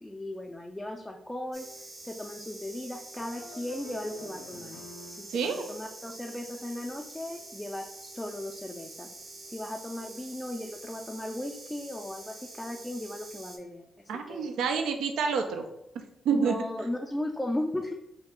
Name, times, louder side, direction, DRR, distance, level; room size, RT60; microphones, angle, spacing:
voice 1, 0.0-4.8 5.1-9.1 9.5-13.8 14.3-14.5 16.3-17.9, left 1 dB, 10° left, 1 dB, 0.4 m, -36 dB
sound 1, 1.5-13.6, right 2 dB, 50° right, 0.7 m, -46 dB
sound 2, 3.2-5.3, left 2 dB, 80° left, 0.5 m, -48 dB
voice 2, 5.3-5.7 14.1-15.6 16.3-16.5, right 6 dB, 85° right, 5 dB, 0.3 m, -28 dB
2.8 x 2.3 x 3.5 m, 0.84 s
cardioid pair, 65°, 0 cm